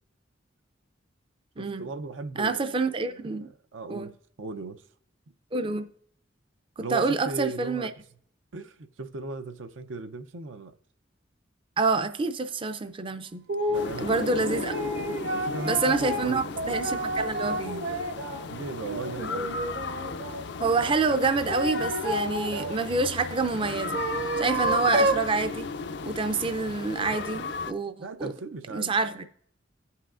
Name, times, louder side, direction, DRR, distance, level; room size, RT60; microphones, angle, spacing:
voice 1, 1.6-4.1 4.4-4.8 6.8-7.9 8.5-10.8 13.7-14.4 15.3-16.8 18.5-19.6 28.0-29.3, right 3 dB, 85° right, 0.6 m, -37 dB
voice 2, 2.4-3.5 3.9-4.1 5.5-5.9 6.8-7.9 11.8-13.4 14.0-14.7 15.1-15.2 15.7-17.9 20.6-24.0 24.4-25.7 26.0-28.3 28.7-29.2, right 4 dB, 25° right, 0.4 m, -27 dB
sound 1, 13.5-13.9 14.4-18.4 18.9-20.4 21.1-22.8 23.6-25.3, right 1 dB, 60° right, 0.9 m, -30 dB
sound 2, 13.7-27.7, left 4 dB, 60° left, 0.4 m, -35 dB
16.5 x 5.6 x 2.5 m
head